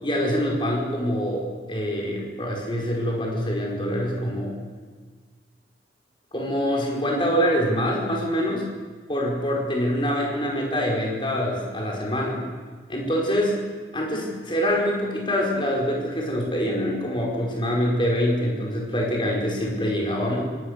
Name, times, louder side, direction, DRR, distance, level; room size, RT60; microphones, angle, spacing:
voice 1, 0.0-4.6 6.3-8.7 9.1-12.5 12.9-13.6 13.9-20.4, equal, 25° left, -1 dB, 5.0 m, -25 dB
25.0 x 19.0 x 6.8 m, 1.5 s
head